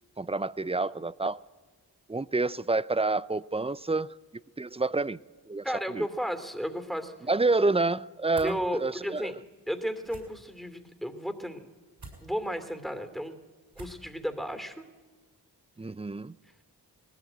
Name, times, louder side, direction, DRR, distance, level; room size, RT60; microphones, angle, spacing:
voice 1, 0.2-1.4 2.1-4.2 4.6-5.2 5.5-6.1 7.3-9.3 15.8-16.3, right 3 dB, 15° right, 0.5 m, -28 dB
voice 2, 5.6-7.3 8.4-9.4 9.7-11.6 12.2-13.3 13.8-14.8, equal, ahead, 2.7 m, -33 dB
sound 1, 8.3-8.5 10.0-10.2 12.0-12.2 13.7-14.1, right 3 dB, 65° right, 7.1 m, -45 dB
19.0 x 17.0 x 9.1 m
cardioid pair, 45°, 41 cm